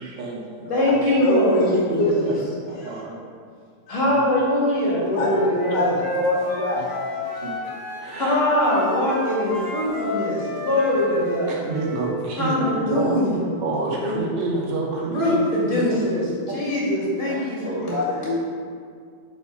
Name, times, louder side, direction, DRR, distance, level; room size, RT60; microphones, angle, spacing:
voice 1, 0.0-1.2 2.8-3.3 4.0-4.2 6.8-6.9 7.4-8.4 11.5-12.6 12.9-13.3 13.6-15.8 16.5-16.8 17.3-18.4, right 3 dB, 85° right, -2 dB, 1.7 m, -29 dB
voice 2, 0.7-2.3 3.9-6.0 8.2-11.6 12.4-13.4 14.0-14.1 15.1-16.3 16.5-17.9, left 1 dB, 45° left, -6 dB, 2.3 m, -22 dB
voice 3, 1.2-1.7 2.0-2.4 2.7-3.0 3.9-4.0 5.2-5.3 5.7-5.9 6.2-6.9 17.9-18.4, left 1 dB, 80° left, -3 dB, 1.6 m, -24 dB
Wind instrument woodwind instrument, 5.1-8.3 8.6-12.1, left 1 dB, 20° left, 0.7 m, -31 dB
7.1 x 4.1 x 4.6 m, 2.1 s
omnidirectional pair, 1.8 m